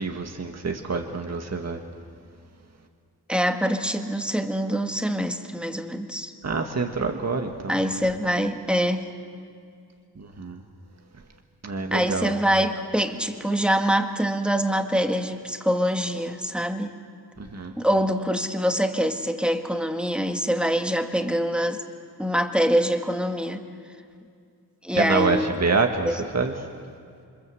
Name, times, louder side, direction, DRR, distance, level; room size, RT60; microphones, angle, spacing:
voice 1, 0.0-1.8 6.4-7.8 10.2-10.6 11.6-12.4 17.4-17.7 24.9-26.7, right 4 dB, 40° right, 4 dB, 1.7 m, -27 dB
voice 2, 3.3-6.3 7.7-9.1 11.9-16.9 17.8-21.8 22.2-23.7 24.8-25.5 26.0-26.1, equal, 5° right, 5 dB, 1.8 m, -24 dB
28.0 x 25.5 x 7.8 m, 2.4 s
wide cardioid pair, 105°, 39 cm